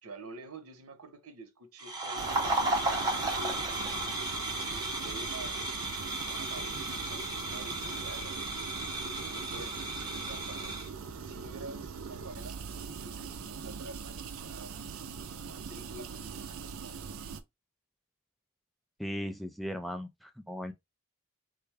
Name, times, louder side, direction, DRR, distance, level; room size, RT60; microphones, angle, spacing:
voice 1, 0.0-5.7 6.2-8.4 9.0-10.8 11.3-12.6 12.9-14.8 15.4-17.0, right 2 dB, 85° right, 0.8 m, -48 dB
sound 1, 1.8-10.9, right 2 dB, 20° right, 0.8 m, -34 dB
sound 2, 2.2-17.4, right 5 dB, 70° right, 0.4 m, -42 dB
voice 2, 19.0-20.7, equal, ahead, 0.3 m, -37 dB
3.4 x 2.2 x 3.2 m
head